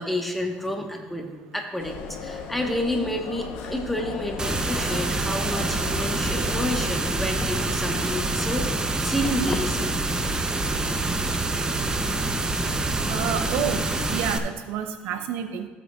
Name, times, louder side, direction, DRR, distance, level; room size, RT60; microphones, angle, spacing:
voice 1, 0.0-10.1, left 1 dB, 5° left, 2 dB, 1.2 m, -30 dB
sound 1, 1.8-6.9, left 5 dB, 85° left, 0.9 m, -37 dB
sound 2, 4.4-14.4, right 3 dB, 20° right, 0.7 m, -26 dB
sound 3, 5.9-14.2, left 4 dB, 30° left, 0.5 m, -37 dB
voice 2, 13.1-13.8 14.1-15.7, right 8 dB, 80° right, 8 dB, 0.7 m, -29 dB
14.5 x 8.2 x 2.4 m, 1.2 s
cardioid pair, 105°, 4 cm